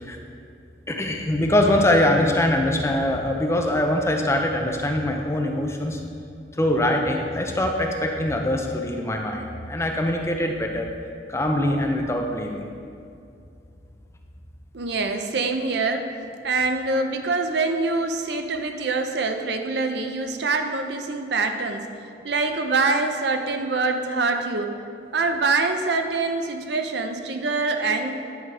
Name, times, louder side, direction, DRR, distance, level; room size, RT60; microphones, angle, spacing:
voice 1, 0.9-6.0 6.6-10.9 11.3-12.7, left 1 dB, 15° left, 2 dB, 0.6 m, -23 dB
voice 2, 14.7-16.1 16.4-21.9 22.2-24.8 25.1-28.1, right 3 dB, 65° right, 6 dB, 0.6 m, -24 dB
10.0 x 4.8 x 4.8 m, 2.5 s
head